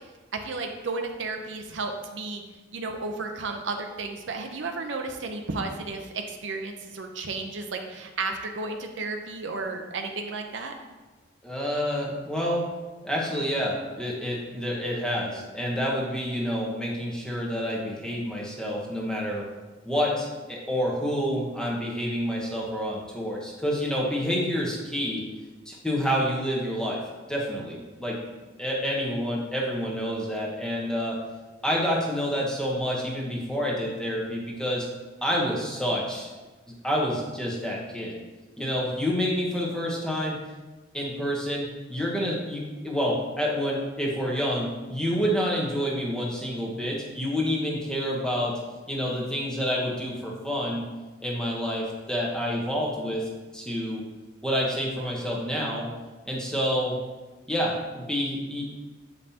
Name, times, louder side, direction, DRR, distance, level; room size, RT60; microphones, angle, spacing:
voice 1, 0.4-2.4 2.7-10.7, right 3 dB, 65° right, 4 dB, 0.6 m, -33 dB
voice 2, 11.4-12.7 13.0-19.5 19.8-25.2 25.7-27.0 27.3-28.2 28.6-31.2 31.6-34.9 35.2-36.3 36.8-38.2 38.6-40.4 40.9-48.6 48.9-50.8 51.2-54.0 54.4-55.9 56.2-56.9 57.5-58.7, equal, 5° left, -3 dB, 0.9 m, -28 dB
7.2 x 5.3 x 2.8 m, 1.2 s
head